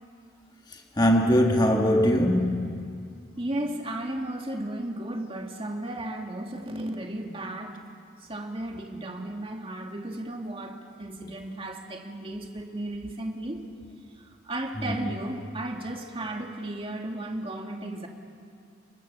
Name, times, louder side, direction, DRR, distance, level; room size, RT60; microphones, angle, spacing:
voice 1, 1.0-3.0 14.8-15.0, equal, 20° left, 1.7 m, -22 dB
voice 2, 3.4-7.9 8.3-13.6 14.4-18.1, right 1 dB, 25° right, 2.3 m, -34 dB
29.5 x 24.0 x 7.0 m
head